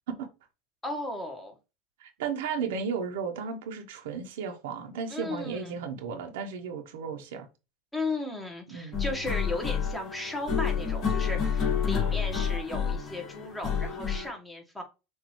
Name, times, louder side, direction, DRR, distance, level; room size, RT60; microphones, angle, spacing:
voice 1, 0.8-1.6 5.1-5.8 7.9-14.8, left 2 dB, 5° left, 1.4 m, -35 dB
voice 2, 2.0-7.5 8.7-9.0, right 6 dB, 90° right, 1.0 m, -34 dB
sound 1, 8.9-14.3, left 7 dB, 40° left, 2.1 m, -29 dB
6.5 x 2.7 x 3.1 m
supercardioid pair, 135°, 0 cm